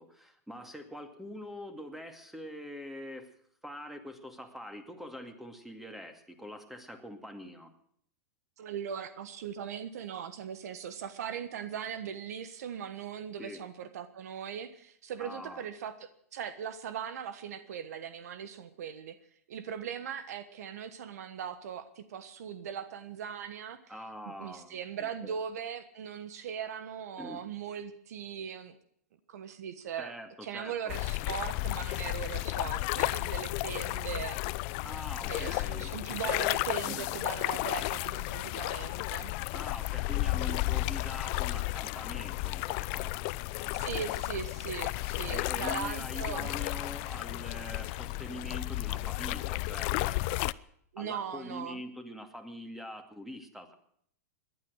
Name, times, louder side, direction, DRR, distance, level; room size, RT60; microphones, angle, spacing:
voice 1, 0.0-3.3 3.6-7.7 13.4-13.6 15.2-15.6 23.9-25.4 27.2-27.4 30.0-31.0 34.8-35.9 36.9-37.1 39.5-43.3 45.2-50.5 51.0-53.7, left 1 dB, 5° right, 7 dB, 2.4 m, -44 dB
voice 2, 8.6-19.2 19.5-23.8 24.3-28.8 29.3-30.1 30.4-34.4 35.3-39.3 43.8-46.7 50.9-51.8, right 8 dB, 75° right, 12 dB, 1.4 m, -39 dB
sound 1, 30.9-50.5, left 21 dB, 50° left, 0.6 m, -33 dB
19.0 x 11.5 x 6.4 m, 0.66 s
hypercardioid pair, 130°, 8 cm